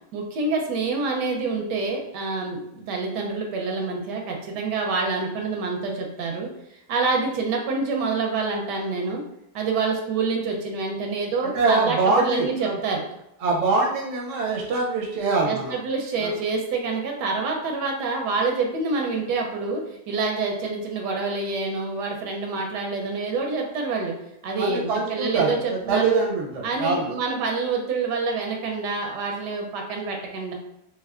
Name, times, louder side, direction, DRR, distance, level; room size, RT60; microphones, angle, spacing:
voice 1, 0.1-6.5 6.9-9.2 9.5-13.0 15.5-19.8 20.1-24.1 24.4-26.2 26.6-30.5, right 4 dB, 85° right, 1 dB, 1.2 m, -27 dB
voice 2, 11.4-12.8 13.4-15.8 16.2-16.3 24.6-27.1, right 3 dB, 65° right, -1 dB, 0.8 m, -24 dB
3.2 x 3.2 x 2.4 m, 0.83 s
omnidirectional pair, 1.8 m